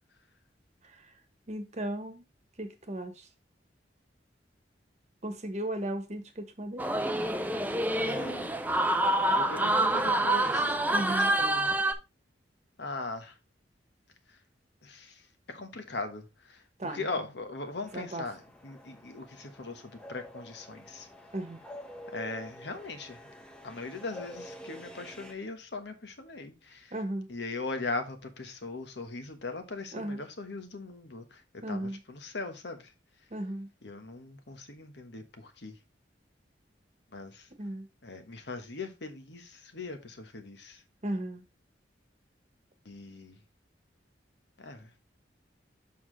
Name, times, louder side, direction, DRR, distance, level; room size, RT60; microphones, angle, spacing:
voice 1, 0.8-1.1 1.5-2.3 2.6-3.3 5.2-6.9 10.9-11.3 16.8-17.2 17.9-18.2 21.3-21.6 26.9-27.3 29.9-30.2 31.6-32.0 33.3-33.7 37.6-37.9 41.0-41.4, right 1 dB, 40° right, 1.2 m, -36 dB
sound 1, 6.8-11.9, right 1 dB, 10° right, 0.6 m, -27 dB
voice 2, 8.0-8.6 9.3-10.7 11.0-11.8 12.8-13.4 14.3-14.4 14.8-21.1 22.1-23.2 23.6-26.9 27.3-32.9 33.8-35.8 37.1-37.5 38.0-40.8 42.8-43.4 44.6-44.9, left 3 dB, 65° left, 1.3 m, -40 dB
sound 2, 17.7-25.3, equal, 5° left, 1.1 m, -48 dB
7.0 x 5.8 x 3.2 m
head